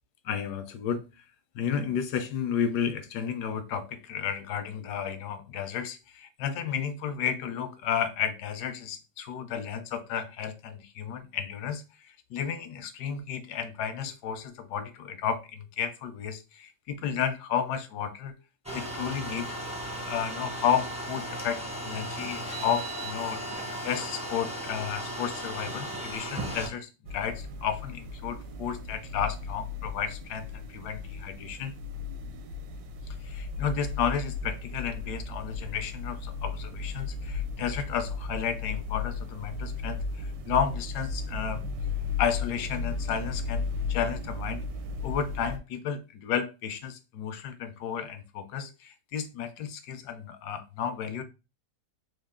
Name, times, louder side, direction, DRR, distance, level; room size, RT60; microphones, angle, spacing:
voice 1, 0.2-1.1 1.5-18.3 18.7-19.6 20.0-31.7 33.1-41.7 42.2-44.6 45.0-51.2, left 8 dB, 70° left, 1.0 m, -32 dB
sound 1, 18.6-26.7, right 1 dB, 10° right, 0.3 m, -36 dB
sound 2, 27.1-45.6, left 4 dB, 80° right, 1.3 m, -35 dB
3.9 x 2.3 x 3.5 m
omnidirectional pair, 2.0 m